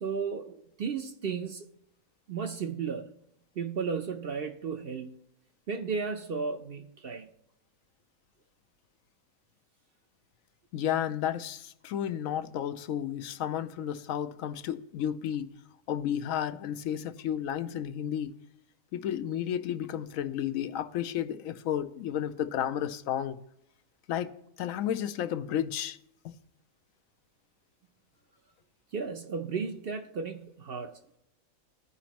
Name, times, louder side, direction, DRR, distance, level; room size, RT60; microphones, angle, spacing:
voice 1, 0.0-1.7 2.3-3.2 3.6-5.2 5.7-7.3 28.9-31.2, right 5 dB, 55° right, 0.7 m, -34 dB
voice 2, 10.7-15.6 15.9-18.4 18.9-23.4 24.1-26.0 26.2-26.3, left 10 dB, 80° left, 1.0 m, -32 dB
15.0 x 5.0 x 2.9 m
omnidirectional pair, 1.4 m